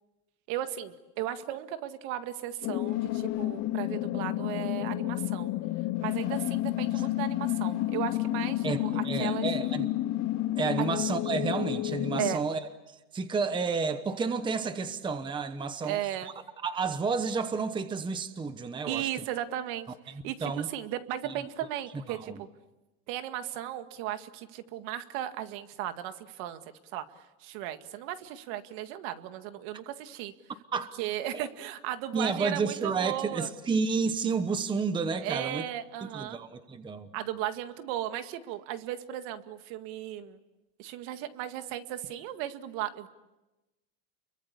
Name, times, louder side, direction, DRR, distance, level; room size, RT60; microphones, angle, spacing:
voice 1, 0.5-5.5 6.0-9.5 12.2-12.4 15.8-16.3 18.9-22.5 23.1-26.6 26.9-27.1 27.4-30.3 31.0-33.5 35.2-36.4 37.1-40.4 40.8-43.1, right 12 dB, 60° right, 2.0 m, -36 dB
sound 1, 2.6-12.3, left 16 dB, 40° left, 0.8 m, -30 dB
voice 2, 8.6-9.9 10.5-12.6 12.9-16.0 16.6-19.3 20.4-20.7 22.1-22.4 30.7-30.9 32.1-35.6 36.0-37.1, right 4 dB, 10° right, 1.0 m, -31 dB
30.0 x 23.5 x 8.3 m
supercardioid pair, 155°, 42 cm